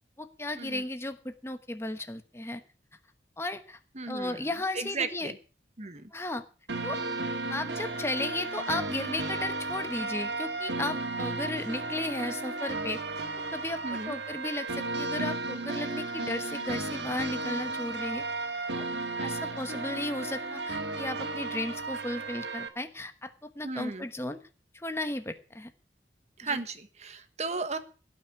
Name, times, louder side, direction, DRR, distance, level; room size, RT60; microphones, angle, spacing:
voice 1, 0.2-2.6 3.4-3.8 4.1-5.3 6.1-6.4 6.8-7.0 7.5-13.2 13.5-18.2 18.7-18.8 19.2-24.4 24.7-25.7 26.4-26.6, left 2 dB, 15° left, 8 dB, 1.1 m, -35 dB
voice 2, 3.9-5.4 5.8-6.1 13.8-14.2 23.6-24.1 26.4-27.8, right 4 dB, 40° right, 10 dB, 1.4 m, -35 dB
sound 1, 6.7-22.7, right 3 dB, 80° right, 1.9 m, -34 dB
17.0 x 6.0 x 8.1 m, 0.36 s
head